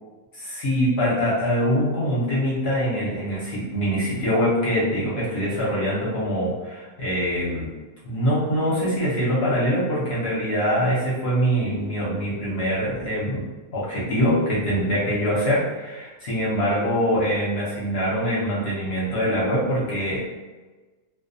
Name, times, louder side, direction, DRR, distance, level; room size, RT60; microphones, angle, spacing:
voice 1, 0.3-7.7 8.0-13.4 13.7-20.2, equal, 55° left, -8 dB, 0.8 m, -24 dB
2.4 x 2.2 x 2.5 m, 1.3 s
omnidirectional pair, 1.5 m